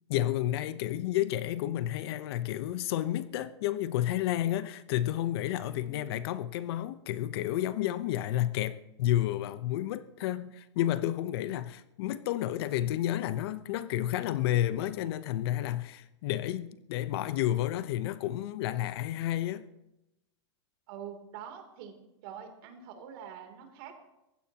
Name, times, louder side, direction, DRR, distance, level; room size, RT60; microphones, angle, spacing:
voice 1, 0.1-19.7, left 13 dB, 55° left, 0.9 m, -31 dB
voice 2, 5.6-6.0 20.9-21.9 22.2-24.0, right 8 dB, 50° right, 3.2 m, -45 dB
22.0 x 16.0 x 3.0 m
supercardioid pair, 145°, 15 cm